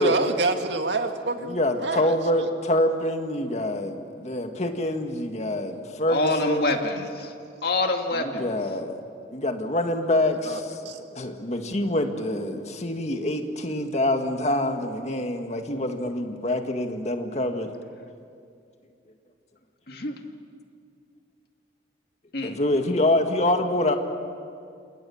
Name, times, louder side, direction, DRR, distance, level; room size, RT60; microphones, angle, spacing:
voice 1, 0.0-2.5 10.5-10.6 10.9-11.0, right 3 dB, 75° right, 5 dB, 2.1 m, -27 dB
voice 2, 1.4-6.9 8.1-9.0 9.3-10.8 11.1-17.7 22.4-24.0, left 1 dB, 40° left, 5 dB, 1.9 m, -26 dB
voice 3, 6.1-7.3 7.6-8.5 19.9-20.2 22.3-22.6, left 2 dB, 55° left, 4 dB, 2.3 m, -26 dB
29.0 x 27.0 x 7.2 m, 2.4 s
head